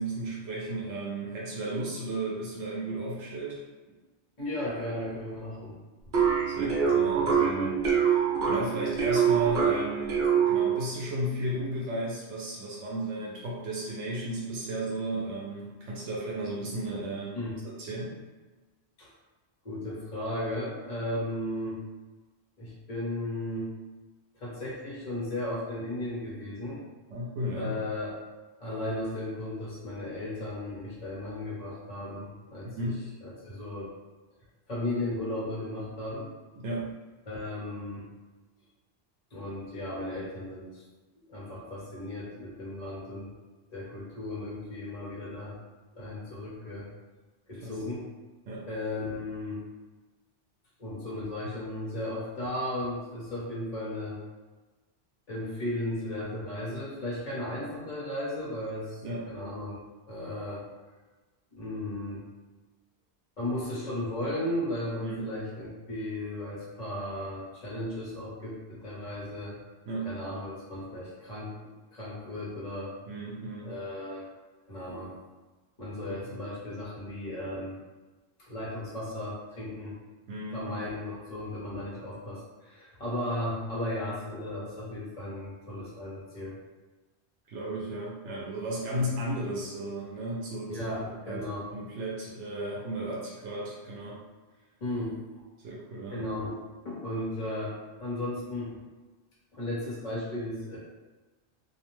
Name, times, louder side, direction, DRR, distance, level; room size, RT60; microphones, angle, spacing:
voice 1, 0.0-3.6 6.5-7.8 8.0-17.4 17.8-18.2 27.1-27.8 32.6-33.1 36.6-36.9 47.5-47.8 48.5-48.7 59.0-59.2 65.0-65.2 69.9-70.1 73.1-73.7 80.3-80.9 87.5-90.9 91.3-94.2 95.6-96.3, right 1 dB, 85° right, -4 dB, 0.9 m, -34 dB
voice 2, 4.4-5.8 7.2-7.3 17.3-17.6 19.0-19.1 19.6-21.8 22.6-23.7 24.3-26.8 27.5-28.2 28.6-32.9 33.2-33.9 34.7-36.3 37.3-38.1 39.3-40.8 41.3-43.3 43.7-45.5 46.0-46.9 47.5-48.1 48.7-49.6 50.8-54.2 55.3-59.8 60.1-60.7 61.5-62.3 63.4-69.6 70.0-71.5 71.9-72.9 73.6-74.2 74.7-75.2 75.8-77.8 78.5-80.0 80.5-86.5 90.7-91.7 94.8-95.2 96.1-98.8 99.5-100.8, left 1 dB, 40° left, -7 dB, 0.9 m, -35 dB
sound 1, 6.1-10.9, right 7 dB, 55° right, 0.7 m, -25 dB
2.5 x 2.1 x 3.0 m, 1.2 s
omnidirectional pair, 1.2 m